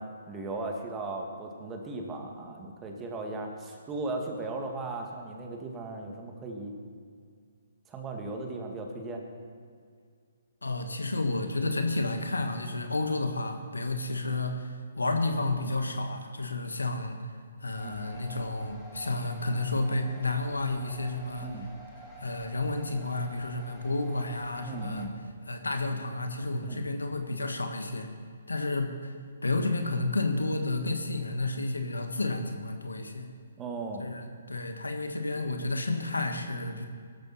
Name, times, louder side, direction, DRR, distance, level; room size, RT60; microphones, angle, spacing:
voice 1, 0.0-6.7 7.9-9.2 17.8-17.9 21.4-21.7 24.6-25.2 26.7-26.8 33.6-34.0, right 2 dB, 15° right, 2 dB, 2.0 m, -37 dB
voice 2, 10.6-14.7 15.0-17.3 17.6-21.5 22.2-25.1 25.5-28.1 28.5-29.1 29.4-33.3 34.0-36.9, left 2 dB, 80° left, 6 dB, 1.5 m, -31 dB
sound 1, 17.7-25.1, equal, ahead, 2.7 m, -49 dB
17.0 x 13.5 x 4.3 m, 2.1 s
figure-of-eight pair, 130°, 0 cm